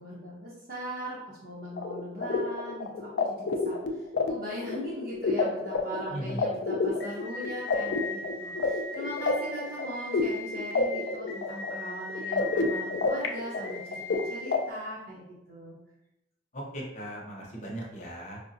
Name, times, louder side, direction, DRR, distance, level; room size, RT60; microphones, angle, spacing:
voice 1, 0.0-15.8, equal, 55° right, -7 dB, 0.7 m, -40 dB
sound 1, 1.8-14.6, left 3 dB, 60° left, 0.3 m, -30 dB
voice 2, 6.1-6.5 16.5-18.4, equal, 40° left, -2 dB, 0.8 m, -38 dB
4.7 x 2.0 x 2.6 m, 0.89 s
head